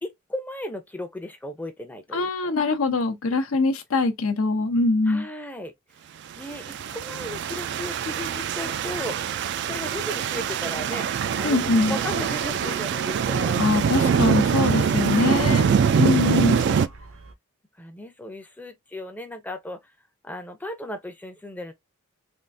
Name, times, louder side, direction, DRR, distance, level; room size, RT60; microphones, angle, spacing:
voice 1, 0.0-2.6 5.1-5.7 6.4-9.2 9.7-14.2 15.2-16.2 16.5-16.9 17.8-19.8 20.2-21.7, left 1 dB, 10° left, 0.5 m, -36 dB
voice 2, 2.1-5.3 11.4-12.0 13.6-15.7 16.0-16.6, left 3 dB, 75° left, 0.7 m, -23 dB
sound 1, 6.5-16.9, right 7 dB, 55° right, 0.3 m, -24 dB
sound 2, 11.5-17.3, right 4 dB, 70° right, 0.7 m, -39 dB
3.5 x 2.4 x 2.6 m
head